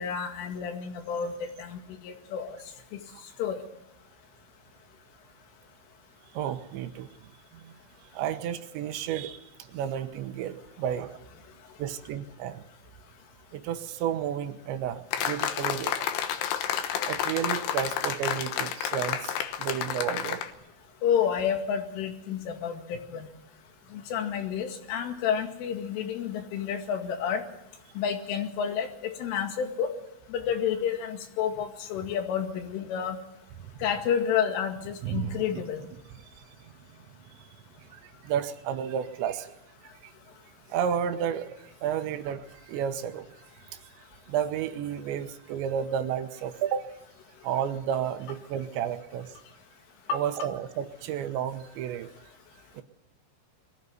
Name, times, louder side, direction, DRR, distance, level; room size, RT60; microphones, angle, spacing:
voice 1, 0.0-1.8 2.0-2.6 2.9-3.0 3.4-3.6 21.0-23.2 23.9-27.4 28.0-29.9 30.3-33.2 33.8-35.8, left 8 dB, 90° left, 5 dB, 4.7 m, -30 dB
voice 2, 6.3-7.1 7.6-7.7 8.1-11.2 11.8-12.6 13.5-16.1 17.1-20.4 35.0-35.6 37.9-39.5 40.0-40.1 40.7-43.3 44.3-46.9 47.4-49.3 50.1-52.1 52.7-52.8, right 9 dB, 80° right, 9 dB, 3.1 m, -32 dB
sound 1, 15.1-20.5, left 9 dB, 70° left, 2.9 m, -30 dB
22.0 x 15.0 x 9.4 m, 0.85 s
omnidirectional pair, 5.5 m